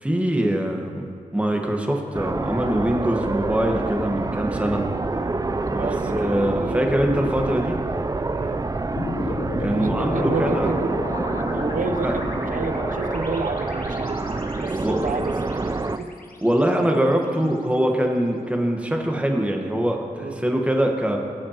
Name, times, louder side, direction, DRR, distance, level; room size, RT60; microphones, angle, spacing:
voice 1, 0.0-4.8 5.7-7.8 9.6-10.7 12.0-12.1 14.8-15.0 16.4-21.2, right 1 dB, 10° right, 1 dB, 1.3 m, -23 dB
sound 1, 2.1-16.0, right 3 dB, 25° right, 0.4 m, -27 dB
voice 2, 5.7-6.8 8.3-8.6 9.8-16.1 17.4-17.6 20.2-20.4, right 3 dB, 70° right, 8 dB, 0.7 m, -31 dB
sound 2, 9.0-17.3, left 2 dB, 85° left, 0.9 m, -33 dB
20.5 x 8.5 x 2.9 m, 2.2 s
wide cardioid pair, 75°, 14 cm